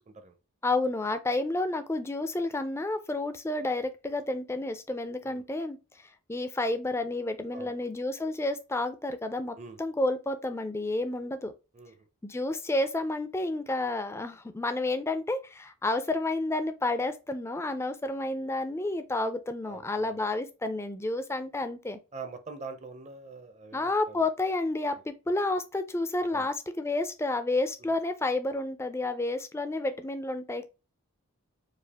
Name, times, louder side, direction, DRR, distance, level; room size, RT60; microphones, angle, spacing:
voice 1, 0.6-5.8 6.3-11.5 12.2-22.0 23.7-30.6, left 2 dB, 10° left, 0.4 m, -30 dB
voice 2, 7.5-7.8 9.6-9.8 11.7-11.9 19.6-20.3 22.1-24.3 26.3-26.5 27.8-27.9, right 4 dB, 30° right, 0.6 m, -44 dB
4.9 x 2.4 x 3.4 m
head